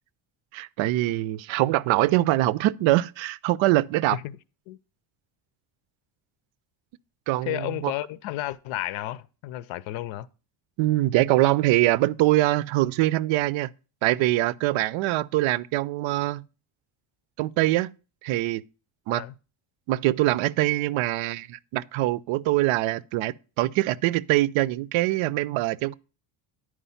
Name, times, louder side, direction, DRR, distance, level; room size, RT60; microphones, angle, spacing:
voice 1, 0.5-4.2 7.3-7.9 10.8-13.7 14.0-16.4 17.4-17.9 18.2-18.6 19.1-19.2 19.9-25.9, right 17 dB, 75° right, 0.5 m, -23 dB
voice 2, 7.4-10.3 19.1-19.3, left 15 dB, 80° left, 0.7 m, -32 dB
10.0 x 4.8 x 5.6 m
cardioid pair, 160°, 47 cm